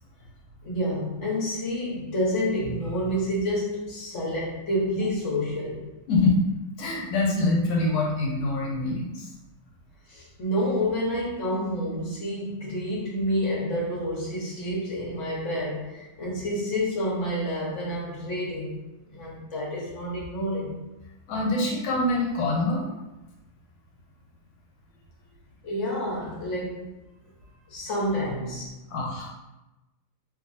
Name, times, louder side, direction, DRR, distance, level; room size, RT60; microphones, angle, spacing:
voice 1, 0.6-5.9 10.1-18.8 19.1-20.7 25.6-26.9 27.7-28.7, equal, 50° left, -5 dB, 0.9 m, -29 dB
voice 2, 6.1-6.4 6.8-9.3 21.3-22.9 28.9-29.3, left 2 dB, 85° left, -2 dB, 1.5 m, -25 dB
3.0 x 2.9 x 2.6 m, 1.0 s
omnidirectional pair, 2.3 m